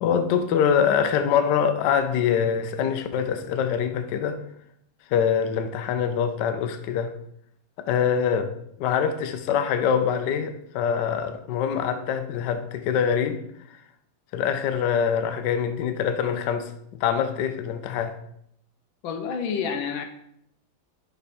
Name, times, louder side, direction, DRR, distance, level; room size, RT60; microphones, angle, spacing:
voice 1, 0.0-4.4 5.1-7.1 7.8-8.5 8.8-13.4 14.3-16.7 17.0-18.2, left 7 dB, 70° left, 8 dB, 1.1 m, -24 dB
voice 2, 19.0-20.0, left 6 dB, 90° left, 6 dB, 1.5 m, -28 dB
5.5 x 4.5 x 4.3 m, 0.72 s
omnidirectional pair, 2.1 m